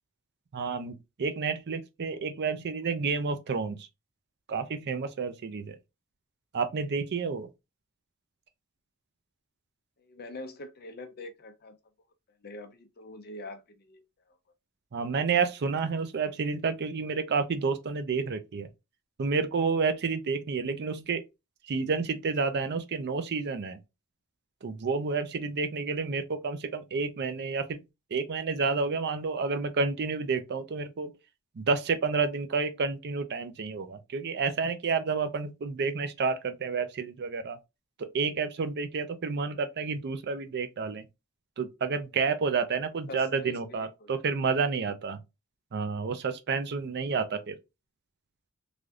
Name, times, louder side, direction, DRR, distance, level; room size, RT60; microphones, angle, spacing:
voice 1, 0.5-3.9 4.5-5.8 6.5-7.5 14.9-18.7 19.2-21.2 21.7-23.8 24.6-27.8 28.1-31.1 31.6-37.6 38.0-41.0 41.6-45.2 45.7-47.5, right 4 dB, 50° right, 0.5 m, -30 dB
voice 2, 10.0-11.8 12.4-14.0 14.3-14.4 43.1-44.2 47.2-47.4, left 2 dB, 45° left, 0.6 m, -44 dB
3.3 x 2.6 x 2.3 m
head